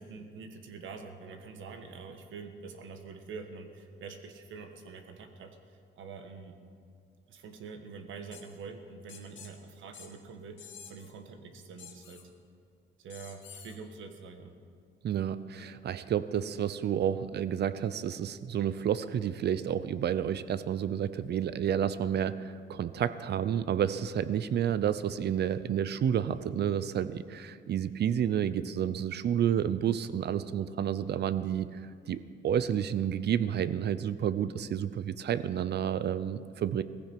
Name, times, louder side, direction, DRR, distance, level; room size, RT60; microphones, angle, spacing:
voice 1, 0.0-6.6 7.3-12.2 13.0-14.6, right 4 dB, 75° right, 6 dB, 1.5 m, -45 dB
sound 1, 8.3-8.4 9.1-9.5 9.9-10.1 10.6-11.1 11.8-12.2 13.1-13.8, left 8 dB, 70° left, 2.0 m, -49 dB
voice 2, 15.0-31.8 32.1-36.8, right 9 dB, 55° right, 15 dB, 0.7 m, -30 dB
17.5 x 15.0 x 4.6 m, 2.3 s
cardioid pair, 90°, 20 cm